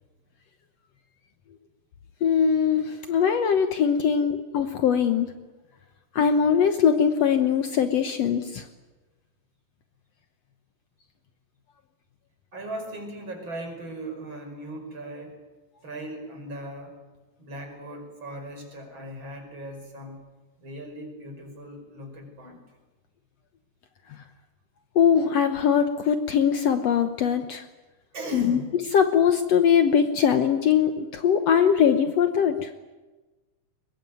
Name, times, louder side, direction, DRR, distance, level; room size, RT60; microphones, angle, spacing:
voice 1, 2.2-5.3 6.1-8.7 24.1-24.2 25.0-27.7 28.3-28.6 28.9-32.7, left 7 dB, 65° left, 8 dB, 2.0 m, -21 dB
voice 2, 12.5-15.4 15.8-17.0 17.4-20.2 20.6-22.6 28.1-28.7, right 1 dB, 40° right, 3 dB, 6.1 m, -38 dB
23.0 x 21.5 x 9.3 m, 1.2 s
omnidirectional pair, 3.5 m